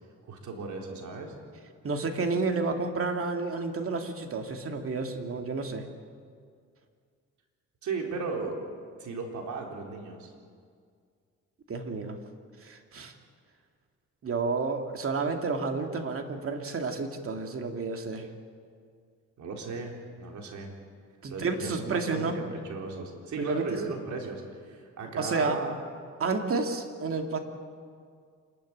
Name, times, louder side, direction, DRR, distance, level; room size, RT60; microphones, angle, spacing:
voice 1, 0.3-1.3 7.8-8.6 9.0-10.3 19.4-20.7 21.3-25.8, right 4 dB, 70° right, 1 dB, 3.9 m, -36 dB
voice 2, 1.8-5.9 11.7-12.2 12.6-13.1 14.2-18.3 21.2-22.4 23.4-23.6 25.2-25.6 26.2-27.4, right 4 dB, 45° right, 4 dB, 2.5 m, -30 dB
27.0 x 13.0 x 8.7 m, 2.1 s
cardioid pair, 90°, 30 cm